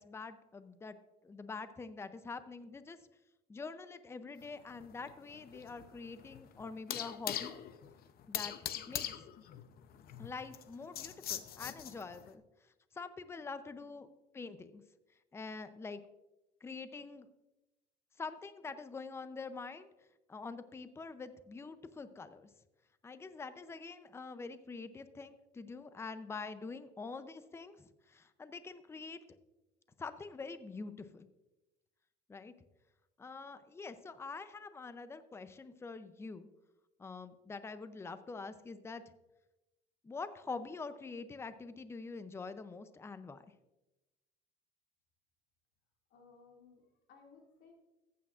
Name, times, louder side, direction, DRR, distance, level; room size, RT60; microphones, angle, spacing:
voice 1, 0.0-3.0 3.5-7.5 8.3-8.5 8.9-9.1 10.2-12.4 12.9-14.1 14.3-14.8 15.3-16.0 16.6-17.3 18.2-19.9 20.3-22.5 23.0-29.2 30.0-31.3 32.3-32.5 33.2-36.5 37.0-39.0 40.0-43.5, left 4 dB, 15° left, 12 dB, 0.5 m, -45 dB
sound 1, 4.4-12.3, left 11 dB, 50° left, 0.6 m, -42 dB
voice 2, 46.1-47.7, left 5 dB, 70° left, 0 dB, 2.2 m, -60 dB
14.5 x 8.4 x 2.4 m, 1.0 s
cardioid pair, 120°, 20 cm